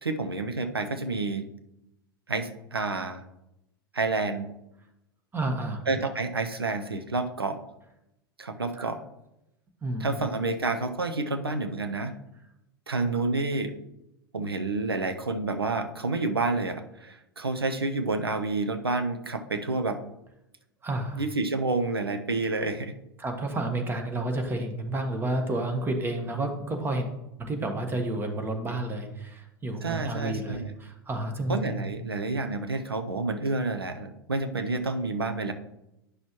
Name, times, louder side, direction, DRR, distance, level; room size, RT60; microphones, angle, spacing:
voice 1, 0.0-1.5 2.3-3.2 3.9-4.5 5.9-7.6 8.4-9.0 10.0-12.2 12.9-13.7 14.3-20.0 21.1-22.9 29.8-30.7 31.5-35.5, right 3 dB, 90° right, 8 dB, 0.7 m, -29 dB
voice 2, 5.3-5.8 8.7-8.9 9.8-10.2 20.8-21.2 23.2-27.1 27.4-31.9, right 2 dB, 15° right, 4 dB, 1.3 m, -30 dB
9.6 x 6.1 x 3.0 m, 0.89 s
figure-of-eight pair, 90°, 12 cm